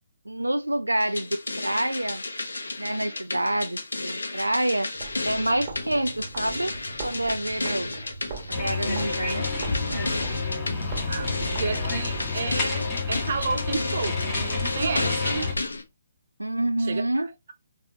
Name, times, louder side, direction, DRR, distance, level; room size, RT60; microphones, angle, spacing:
voice 1, 0.3-2.2 2.8-4.9 5.2-6.7 7.0-8.0 8.5-10.1 16.4-17.3, right 1 dB, 85° right, 0.3 m, -27 dB
sound 1, 1.0-15.8, left 2 dB, 75° left, 0.8 m, -33 dB
sound 2, 4.9-12.3, right 3 dB, 30° right, 1.4 m, -41 dB
sound 3, 8.5-15.5, left 4 dB, 20° left, 1.3 m, -29 dB
voice 2, 11.1-15.6 16.8-17.2, right 5 dB, 50° right, 0.7 m, -31 dB
4.1 x 2.6 x 2.9 m
figure-of-eight pair, 135°, 0 cm